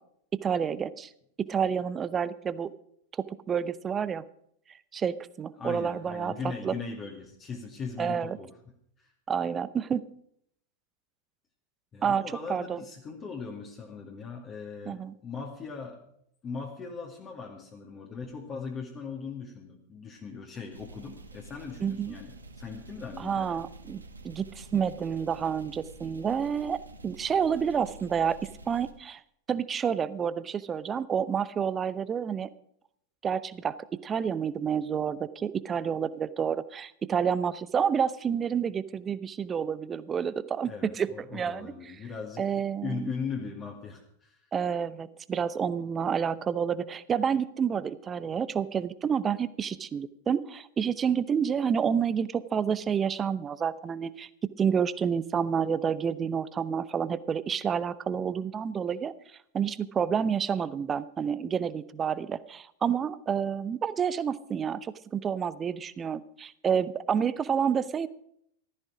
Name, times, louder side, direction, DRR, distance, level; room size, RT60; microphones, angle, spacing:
voice 1, 0.3-1.1 1.5-2.7 3.2-4.2 4.9-6.3 6.6-6.7 8.0-8.4 9.3-10.1 12.0-12.2 12.5-12.8 14.9-15.1 21.8-22.1 23.2-28.4 28.7-29.2 29.5-32.5 33.2-33.7 34.0-41.7 42.4-43.1 44.5-54.3 54.6-59.1 59.5-68.1, right 7 dB, 20° right, 17 dB, 0.7 m, -29 dB
voice 2, 5.6-9.1 11.9-16.0 16.4-23.6 40.6-44.4, left 5 dB, 25° left, 0 dB, 2.3 m, -39 dB
sound 1, 20.7-28.9, right 2 dB, 75° right, 1.6 m, -48 dB
15.5 x 13.5 x 4.9 m, 0.70 s
figure-of-eight pair, 90°, 0 cm